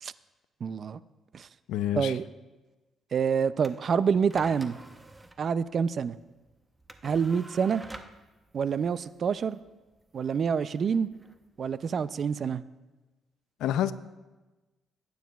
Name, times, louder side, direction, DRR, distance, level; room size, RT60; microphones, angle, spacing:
voice 1, 0.6-1.0 1.3-1.5 1.9-2.2 3.1-4.8 5.4-6.2 7.0-7.8 8.5-9.6 10.1-11.1 11.6-12.6, right 6 dB, 50° right, 16 dB, 0.3 m, -27 dB
voice 2, 1.7-2.1 13.6-13.9, left 11 dB, 85° left, 14 dB, 0.4 m, -27 dB
sound 1, 3.6-12.1, right 2 dB, 15° right, 0.7 m, -50 dB
17.0 x 9.3 x 2.3 m, 1.2 s
cardioid pair, 90°, 0 cm